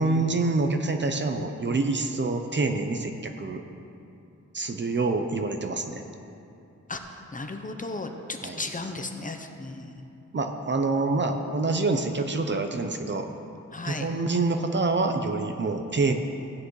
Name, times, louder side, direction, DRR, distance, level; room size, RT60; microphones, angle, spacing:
voice 1, 0.0-3.6 4.5-6.0 8.4-8.6 10.3-13.3 13.8-16.1, right 3 dB, 40° right, 6 dB, 0.7 m, -26 dB
voice 2, 6.9-9.9 13.7-14.1, left 2 dB, 30° left, 5 dB, 0.7 m, -35 dB
15.5 x 9.3 x 3.2 m, 2.7 s
wide cardioid pair, 115°, 29 cm